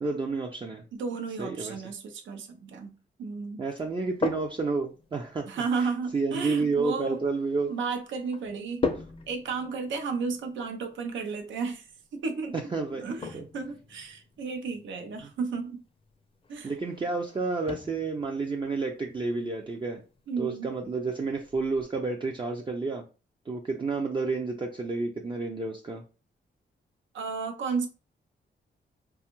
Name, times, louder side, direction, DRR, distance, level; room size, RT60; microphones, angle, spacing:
voice 1, 0.0-0.8 1.4-1.8 3.6-5.5 5.8-5.9 6.1-7.7 12.7-13.0 13.3-13.4 16.6-20.0 20.4-23.0 23.5-26.0, right 3 dB, 25° right, 0.4 m, -30 dB
voice 2, 0.9-2.9 3.2-3.6 5.5-7.2 7.7-8.9 9.3-12.5 12.9-15.8 16.5-16.7 20.3-20.7 27.1-27.9, right 4 dB, 90° right, 0.6 m, -33 dB
sound 1, 3.8-21.8, left 4 dB, 30° left, 0.5 m, -41 dB
2.5 x 2.3 x 2.9 m
cardioid pair, 75°, 19 cm